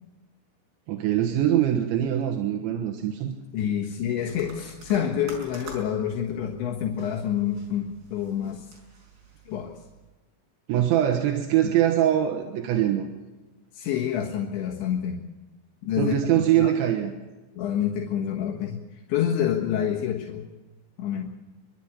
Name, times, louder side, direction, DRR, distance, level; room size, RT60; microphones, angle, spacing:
voice 1, 0.9-3.3 10.7-13.1 16.0-17.1, right 11 dB, 85° right, 2 dB, 3.6 m, -23 dB
voice 2, 3.5-8.7 9.5-9.7 11.6-11.7 13.7-15.3 15.8-16.1 16.5-16.7 17.6-18.8 19.1-20.5 21.0-21.3, left 9 dB, 80° left, -1 dB, 3.8 m, -27 dB
sound 1, 4.2-10.1, right 3 dB, 65° right, 7.3 m, -47 dB
27.5 x 12.0 x 9.0 m, 1.2 s
omnidirectional pair, 5.2 m